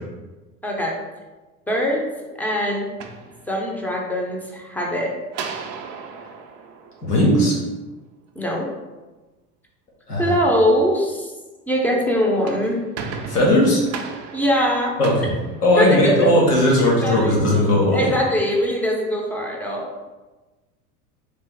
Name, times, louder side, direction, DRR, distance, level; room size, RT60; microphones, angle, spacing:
voice 1, 0.6-0.9 1.7-2.0 2.4-2.9 3.5-5.1 8.4-8.7 10.2-11.3 11.7-12.8 14.3-15.0 15.8-16.1 16.8-17.3 17.9-19.9, equal, 5° left, -1 dB, 0.7 m, -22 dB
sound 1, 2.8-4.0 5.3-7.8 12.2-16.3, right 5 dB, 35° right, 0.4 m, -36 dB
voice 2, 7.0-7.6 10.1-10.4 13.3-13.8 15.0-15.3 15.6-18.0, left 1 dB, 90° left, -4 dB, 1.3 m, -17 dB
3.3 x 2.9 x 3.4 m, 1.2 s
hypercardioid pair, 80°, 45 cm